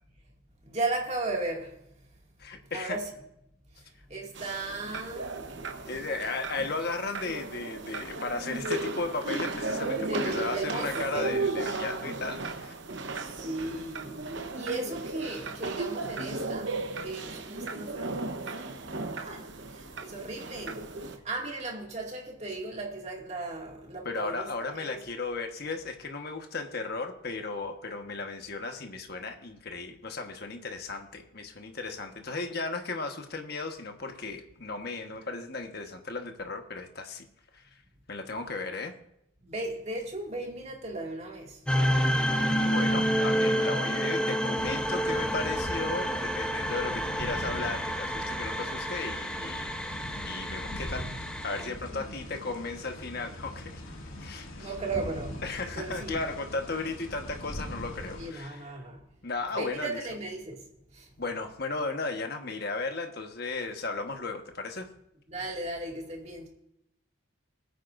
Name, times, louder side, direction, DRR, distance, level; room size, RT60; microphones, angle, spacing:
voice 1, 0.6-1.8 2.7-3.1 3.7-5.5 10.1-11.3 13.4-25.0 39.4-41.6 51.9-52.2 54.6-55.4 55.8-56.2 58.2-59.0 59.5-60.6 60.9-61.1 65.3-66.5, right 2 dB, 30° right, 2.3 m, -36 dB
voice 2, 2.4-3.0 5.8-12.7 24.0-37.3 37.5-37.6 38.1-38.9 42.4-49.7 50.2-51.1 51.4-53.8 54.2-54.7 55.4-58.7 59.2-60.0 61.2-64.9, left 3 dB, 50° left, 1.3 m, -35 dB
sound 1, 4.3-21.2, right 3 dB, 60° right, 1.0 m, -35 dB
sound 2, 41.7-51.7, equal, 5° left, 0.9 m, -29 dB
sound 3, 44.6-58.3, left 1 dB, 75° left, 2.2 m, -41 dB
20.5 x 9.3 x 2.6 m
head